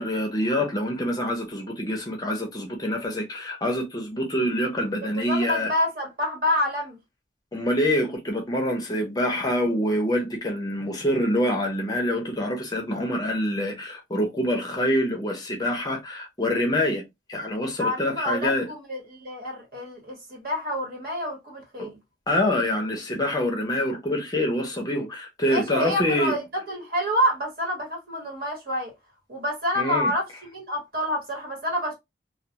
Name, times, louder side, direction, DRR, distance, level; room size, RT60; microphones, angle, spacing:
voice 1, 0.0-5.7 7.5-17.0 17.3-18.7 21.8-21.9 22.3-26.4 29.8-30.1, left 1 dB, 20° left, 0.6 m, -26 dB
voice 2, 5.0-7.0 17.8-22.0 25.5-28.9 29.3-31.9, equal, 55° right, 1.2 m, -28 dB
2.3 x 2.3 x 2.7 m
head